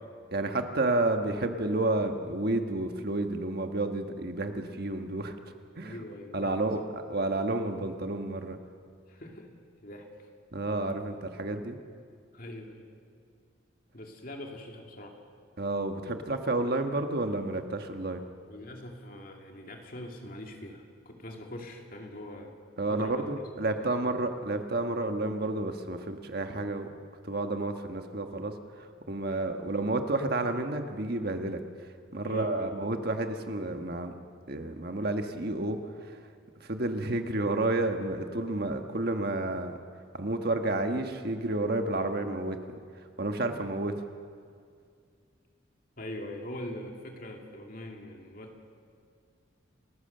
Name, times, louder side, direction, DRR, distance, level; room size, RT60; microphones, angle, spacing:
voice 1, 0.3-5.3 5.8-6.0 6.3-8.6 10.5-11.8 15.6-18.2 22.8-26.9 27.2-34.1 34.5-36.2 36.6-39.8 40.1-42.6 43.2-43.9, right 2 dB, 55° right, 6 dB, 1.4 m, -30 dB
voice 2, 5.8-6.5 9.1-9.5 9.8-10.3 12.3-12.9 13.9-15.2 18.5-22.5 22.9-23.3 23.6-23.8 29.3-29.4 32.2-32.7 43.5-43.7 46.0-48.6, left 1 dB, 45° left, 2 dB, 2.5 m, -42 dB
29.5 x 14.5 x 6.8 m, 2.2 s
head